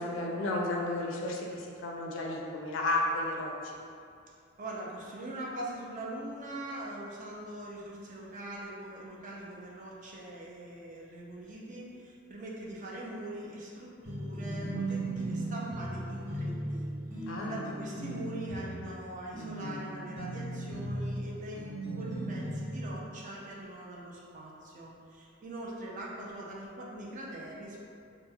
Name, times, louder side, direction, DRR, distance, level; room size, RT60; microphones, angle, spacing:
voice 1, 0.0-3.5 17.3-17.6, left 2 dB, 70° left, -1 dB, 0.4 m, -32 dB
voice 2, 4.6-27.8, right 1 dB, 40° right, -4 dB, 0.4 m, -42 dB
sound 1, 14.0-22.9, right 1 dB, 20° right, 1.3 m, -37 dB
3.0 x 2.0 x 2.2 m, 2.4 s
head